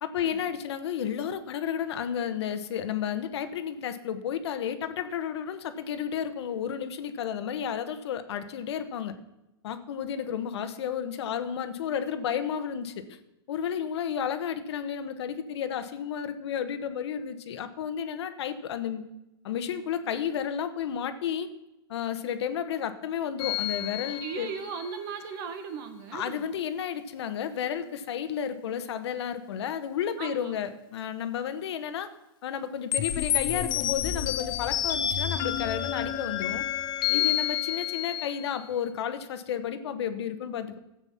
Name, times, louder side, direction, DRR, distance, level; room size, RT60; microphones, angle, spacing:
voice 1, 0.0-9.1 9.6-13.2 13.5-19.0 19.4-21.5 21.9-24.5 26.1-32.1 32.4-36.6 37.1-40.8, left 8 dB, 80° left, 10 dB, 1.2 m, -32 dB
sound 1, 23.4-24.9 32.9-38.6, left 11 dB, 35° left, 0.8 m, -29 dB
voice 2, 24.2-26.5 30.2-30.6 37.1-37.4, right 6 dB, 55° right, 8 dB, 1.8 m, -37 dB
13.0 x 8.0 x 5.8 m, 0.94 s
supercardioid pair, 150°, 14 cm